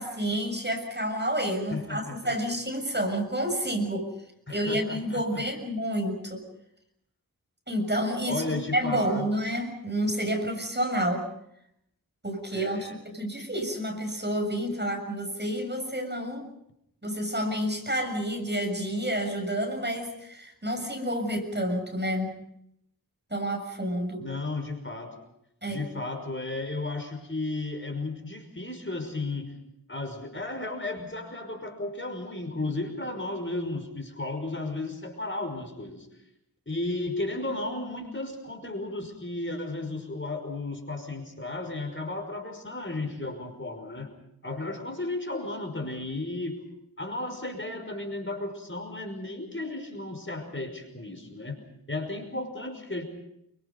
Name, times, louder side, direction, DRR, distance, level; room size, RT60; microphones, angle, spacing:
voice 1, 0.0-4.1 4.5-6.4 7.7-11.2 12.2-16.5 17.0-22.4 23.3-24.3 25.6-25.8, equal, 30° right, 4 dB, 7.0 m, -29 dB
voice 2, 1.7-2.3 4.5-5.4 8.3-9.3 12.5-13.0 24.2-25.2 25.7-29.6 29.9-36.1 36.7-44.1 44.4-46.6 47.0-51.6 51.9-53.0, left 2 dB, 35° left, 5 dB, 5.7 m, -34 dB
29.0 x 25.0 x 5.4 m, 0.77 s
wide cardioid pair, 60°, 35 cm